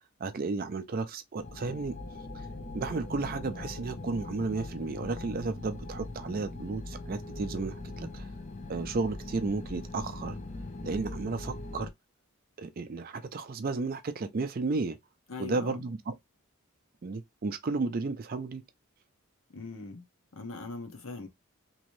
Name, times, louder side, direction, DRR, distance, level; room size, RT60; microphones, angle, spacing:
voice 1, 0.2-2.0 2.3-2.5 2.7-8.3 8.7-10.4 10.8-11.9 12.6-15.0 15.4-16.1 17.0-18.6, right 3 dB, 40° right, 0.4 m, -33 dB
sound 1, 1.4-11.9, left 2 dB, 30° left, 0.5 m, -41 dB
voice 2, 15.3-15.8 19.5-20.0 20.3-21.3, left 3 dB, 60° left, 0.9 m, -40 dB
3.0 x 2.7 x 3.0 m
head